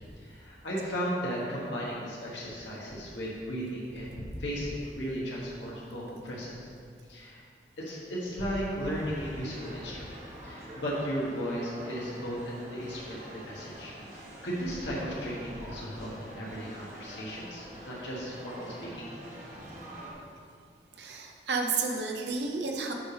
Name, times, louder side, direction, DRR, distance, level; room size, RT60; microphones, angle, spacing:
voice 1, 0.2-6.7 7.1-7.4 7.8-19.1, equal, 90° left, -6 dB, 1.5 m, -35 dB
sound 1, 8.8-20.1, right 1 dB, 40° right, 1.3 m, -46 dB
voice 2, 20.9-22.9, right 4 dB, 75° right, 2 dB, 0.8 m, -31 dB
7.5 x 3.4 x 6.2 m, 2.3 s
head